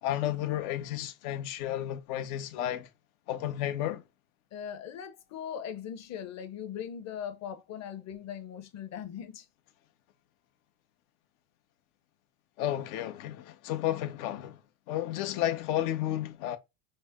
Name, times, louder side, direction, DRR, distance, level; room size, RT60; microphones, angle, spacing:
voice 1, 0.0-2.9 3.3-4.0 12.6-14.6 14.9-16.6, left 12 dB, 60° left, 1.2 m, -32 dB
voice 2, 4.5-9.5, left 8 dB, 35° left, 1.1 m, -40 dB
5.3 x 2.2 x 3.6 m
supercardioid pair, 125°, 48 cm